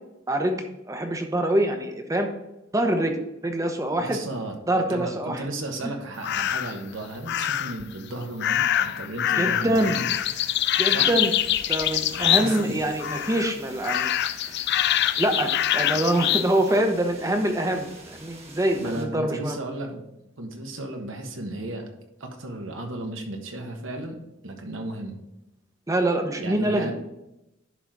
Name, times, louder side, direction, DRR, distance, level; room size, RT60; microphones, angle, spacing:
voice 1, 0.3-2.3 2.7-3.2 3.4-4.2 4.7-5.4 9.3-10.0 10.8-11.3 11.7-14.1 15.1-19.6 25.9-26.9, right 1 dB, 15° right, 5 dB, 0.9 m, -25 dB
voice 2, 4.0-4.6 4.9-10.1 10.9-11.2 12.0-12.8 18.8-20.0 20.4-21.9 22.2-24.2 24.4-25.2 26.4-26.9, right 1 dB, 70° right, 3 dB, 1.3 m, -34 dB
sound 1, 6.2-6.8 7.3-7.8 8.4-12.7 13.0-13.5 13.8-16.5, left 11 dB, 55° left, 0.4 m, -24 dB
sound 2, 10.1-19.1, right 3 dB, 30° right, 1.4 m, -47 dB
11.0 x 4.0 x 4.6 m, 0.90 s
head